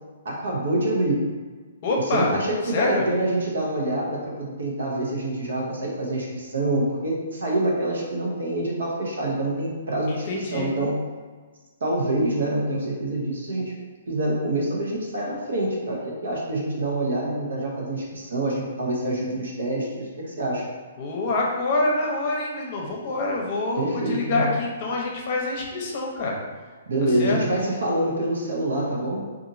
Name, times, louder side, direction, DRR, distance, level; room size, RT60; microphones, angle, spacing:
voice 1, 0.2-1.3 2.1-11.0 11.8-13.7 14.1-20.7 23.8-24.5 26.9-29.3, right 1 dB, 75° right, -2 dB, 0.8 m, -26 dB
voice 2, 1.8-2.3 2.7-3.1 10.1-10.7 21.0-26.4 27.0-27.4, left 2 dB, 45° left, -1 dB, 0.7 m, -26 dB
2.8 x 2.5 x 2.6 m, 1.4 s
hypercardioid pair, 135°, 0 cm